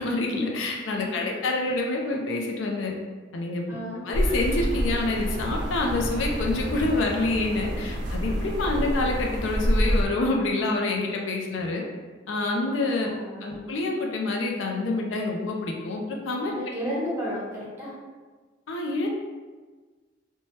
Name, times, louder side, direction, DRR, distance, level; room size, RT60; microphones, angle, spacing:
voice 1, 0.0-2.9 3.3-3.8 4.0-11.8 12.3-13.1 13.4-16.5 18.7-19.1, left 2 dB, 80° left, 0 dB, 0.4 m, -27 dB
voice 2, 0.9-1.3 3.7-4.0 13.0-13.6 16.4-17.9, equal, 15° right, -7 dB, 0.8 m, -34 dB
sound 1, 4.1-10.0, equal, 60° right, 0.4 m, -27 dB
3.1 x 2.2 x 2.7 m, 1.4 s
head